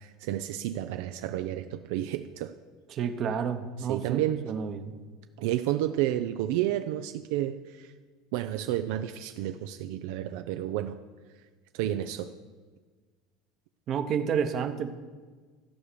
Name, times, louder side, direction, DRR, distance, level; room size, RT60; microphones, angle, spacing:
voice 1, 0.0-2.5 3.8-4.5 5.4-7.9 8.3-11.0 11.7-12.3, right 13 dB, 75° right, 8 dB, 0.4 m, -31 dB
voice 2, 2.9-4.2 4.5-4.9 13.9-14.9, right 7 dB, 40° right, 9 dB, 0.9 m, -30 dB
14.0 x 5.0 x 6.8 m, 1.4 s
supercardioid pair, 135°, 0 cm